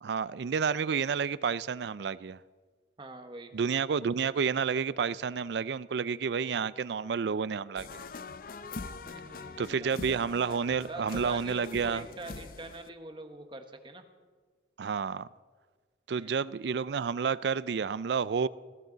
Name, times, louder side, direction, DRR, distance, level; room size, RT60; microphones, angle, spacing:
voice 1, 0.0-2.4 3.5-8.0 9.6-12.0 14.8-15.3 16.1-18.5, right 6 dB, 65° right, 0.4 m, -30 dB
voice 2, 3.0-3.5 9.0-10.2 10.9-14.0 16.1-16.4, right 2 dB, 25° right, 1.2 m, -44 dB
sound 1, 7.8-12.9, left 4 dB, 50° left, 0.5 m, -43 dB
21.0 x 15.0 x 4.0 m
head